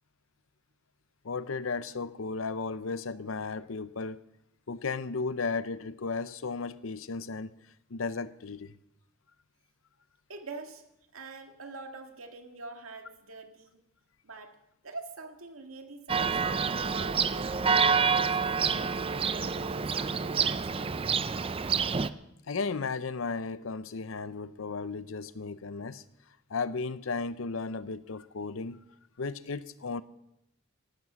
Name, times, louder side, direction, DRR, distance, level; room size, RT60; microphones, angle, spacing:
voice 1, 1.2-4.2 4.7-7.6 7.9-8.8 22.5-26.0 26.5-28.8 29.2-30.0, left 4 dB, 70° left, 0.7 m, -35 dB
voice 2, 10.3-10.8 11.1-13.8 14.2-14.6 14.8-18.9 19.2-20.9, right 3 dB, 90° right, 2.1 m, -45 dB
Church bell, 16.1-22.1, right 5 dB, 25° right, 0.5 m, -28 dB
15.0 x 12.5 x 6.3 m
head